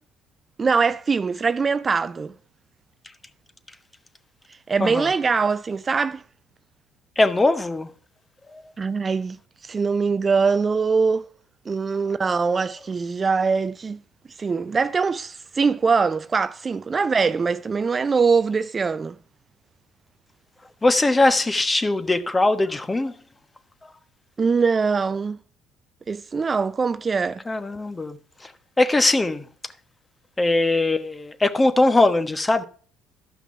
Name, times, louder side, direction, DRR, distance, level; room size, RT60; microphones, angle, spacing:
voice 1, 0.6-2.3 4.7-6.2 8.8-9.4 9.6-11.2 11.7-14.0 14.4-19.2 24.4-25.4 26.1-27.4, right 5 dB, 35° right, 0.5 m, -22 dB
voice 2, 7.2-7.9 8.5-8.6 20.8-23.1 27.5-28.2 28.4-28.5 28.8-29.4 30.4-32.6, left 2 dB, 20° left, 1.2 m, -20 dB
12.5 x 5.9 x 5.8 m
hypercardioid pair, 65°, 0 cm